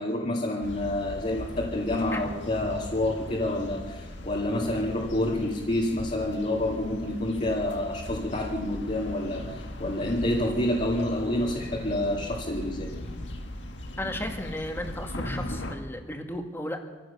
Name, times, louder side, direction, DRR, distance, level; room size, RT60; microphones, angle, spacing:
voice 1, 0.0-12.9, left 1 dB, 40° left, -2 dB, 2.3 m, -28 dB
sound 1, 0.6-15.7, left 1 dB, 70° left, 1.9 m, -39 dB
voice 2, 14.0-16.8, left 1 dB, 10° left, 4 dB, 1.9 m, -34 dB
25.0 x 15.5 x 6.9 m, 1.4 s
head